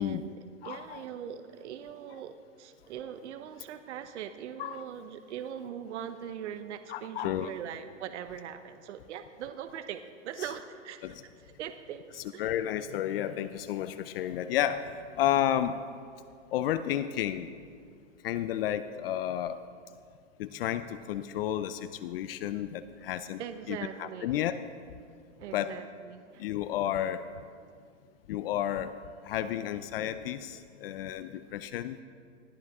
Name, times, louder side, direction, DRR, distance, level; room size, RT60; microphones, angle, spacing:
voice 1, 0.0-12.4 23.4-24.4 25.4-26.5, right 9 dB, 65° right, 9 dB, 1.0 m, -41 dB
voice 2, 0.6-1.0 4.6-4.8 6.9-7.5 11.0-11.1 12.4-15.8 16.5-17.5 18.2-19.6 20.4-23.4 23.7-24.6 25.5-25.7 26.4-27.2 28.3-28.9 29.2-32.0, left 11 dB, 50° left, 12 dB, 0.6 m, -31 dB
19.5 x 14.5 x 3.6 m, 2.2 s
hypercardioid pair, 140°, 37 cm